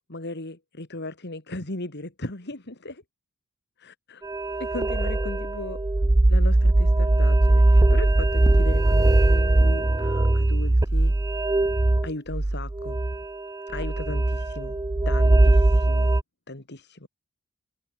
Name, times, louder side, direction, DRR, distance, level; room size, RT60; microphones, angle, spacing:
voice 1, 0.1-3.0 3.8-4.2 4.6-5.8 6.3-11.1 12.0-13.0 13.7-14.8 15.0-16.1 16.5-17.1, left 2 dB, 55° left, 2.9 m, -37 dB
sound 1, 4.2-16.2, right 2 dB, 15° right, 0.4 m, -20 dB
head